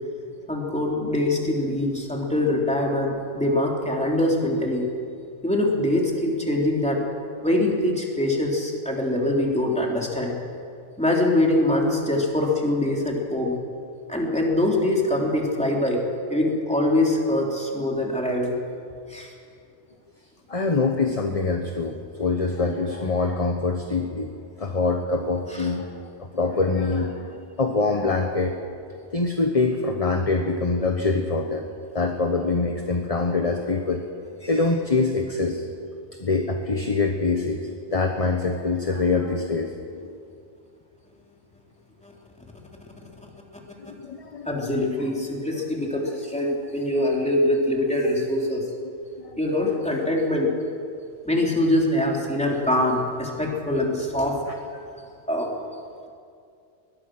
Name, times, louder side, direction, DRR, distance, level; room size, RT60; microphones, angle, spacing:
voice 1, 0.5-4.9 5.4-7.0 7.4-10.3 11.0-13.6 14.1-16.0 16.3-18.5 19.1-19.3 25.5-25.7 42.0-42.1 43.0-43.1 44.4-48.6 49.4-50.5 51.2-54.4 55.3-55.5, left 1 dB, 5° left, -1 dB, 3.3 m, -23 dB
voice 2, 20.5-24.3 24.6-25.9 26.2-28.6 29.1-31.7 31.9-34.0 34.4-35.6 36.2-39.7 43.8-44.8 49.2-49.4, left 3 dB, 30° left, 4 dB, 1.3 m, -24 dB
22.0 x 20.5 x 6.3 m, 2.4 s
omnidirectional pair, 1.2 m